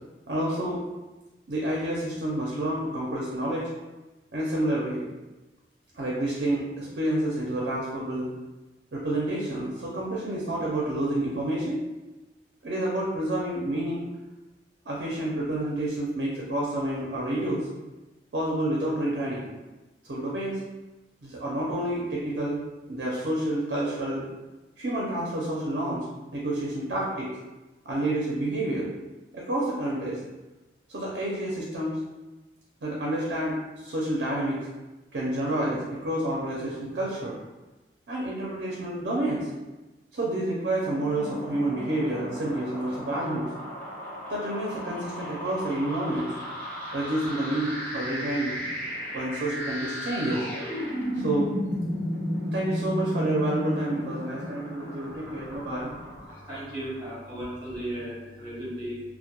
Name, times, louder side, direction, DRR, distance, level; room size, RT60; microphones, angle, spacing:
voice 1, 0.3-0.8 1.5-3.7 4.3-5.0 5.9-8.3 8.9-11.9 12.6-14.1 14.8-17.7 18.3-19.5 20.0-20.6 21.2-22.6 22.9-24.2 24.8-26.1 26.3-27.3 27.8-28.9 29.3-30.2 30.9-32.0 32.8-34.7 35.1-37.4 38.1-39.5 40.1-43.5 44.3-46.3 46.9-48.6 49.1-50.4 51.1-51.5 52.5-55.9, right 1 dB, 70° right, -4 dB, 0.5 m, -29 dB
sound 1, 40.7-57.1, equal, 10° left, 0.6 m, -34 dB
voice 2, 55.1-59.0, right 1 dB, 30° right, -9 dB, 1.1 m, -37 dB
2.2 x 2.1 x 2.8 m, 1.1 s
head